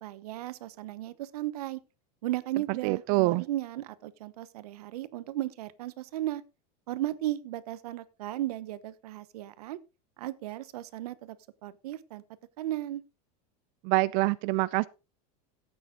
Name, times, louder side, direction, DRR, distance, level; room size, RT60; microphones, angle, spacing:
voice 1, 0.0-1.8 2.2-6.4 6.9-9.8 10.2-11.4 11.6-12.2 12.6-13.0, right 14 dB, 90° right, 1.0 m, -35 dB
voice 2, 2.8-3.4 13.8-14.9, right 21 dB, 45° right, 0.5 m, -25 dB
13.5 x 8.7 x 3.8 m
supercardioid pair, 160°, 19 cm